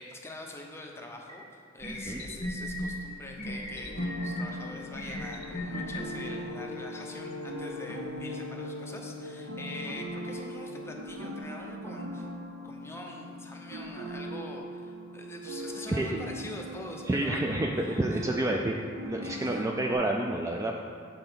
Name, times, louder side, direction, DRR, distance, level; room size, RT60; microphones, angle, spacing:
voice 1, 0.0-12.3 12.6-17.5 17.8-18.2 19.2-19.7, left 1 dB, 15° left, 0 dB, 0.7 m, -44 dB
sound 1, 1.3-1.4 1.8-2.9 3.4-4.4 4.9-6.0, left 1 dB, 35° left, 1.3 m, -35 dB
sound 2, 3.4-11.4, left 5 dB, 80° left, 0.5 m, -43 dB
sound 3, 4.0-20.0, right 1 dB, 75° right, 0.7 m, -41 dB
voice 2, 17.1-18.8 19.0-20.8, right 1 dB, 15° right, 1 dB, 0.3 m, -29 dB
7.9 x 4.0 x 5.6 m, 2.3 s
head